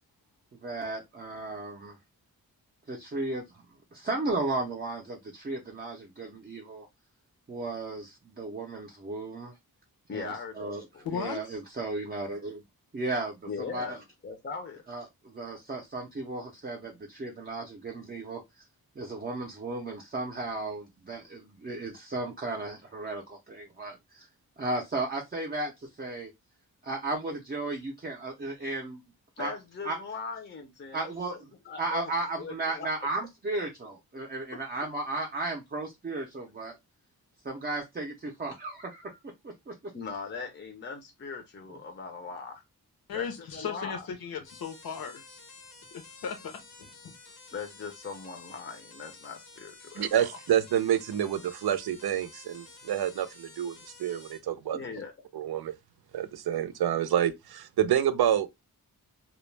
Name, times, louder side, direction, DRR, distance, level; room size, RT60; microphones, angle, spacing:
voice 1, 0.5-2.0 2.9-3.6 3.9-6.9 7.5-9.5 10.1-10.8 11.1-12.6 12.9-13.4 13.7-14.0 14.9-18.6 19.0-24.3 24.6-26.3 26.8-29.0 29.4-29.5 29.8-30.0 30.9-31.3 31.8-36.7 37.4-39.2 39.4-39.7, right 2 dB, 25° right, 0.4 m, -35 dB
voice 2, 10.1-11.1 13.5-14.0 14.2-14.8 29.4-31.4 31.6-32.1 32.4-32.9 39.9-42.6 43.1-44.1 47.5-50.4 54.7-55.1, left 5 dB, 30° left, 0.5 m, -40 dB
voice 3, 11.0-11.4 43.1-45.2 45.9-47.1, left 6 dB, 70° left, 0.7 m, -36 dB
sound 1, 44.4-54.4, left 4 dB, 90° left, 1.0 m, -51 dB
voice 4, 50.0-53.7 54.0-54.8 55.3-55.7 56.1-58.5, right 10 dB, 85° right, 0.5 m, -28 dB
2.2 x 2.0 x 3.1 m
wide cardioid pair, 125°, 37 cm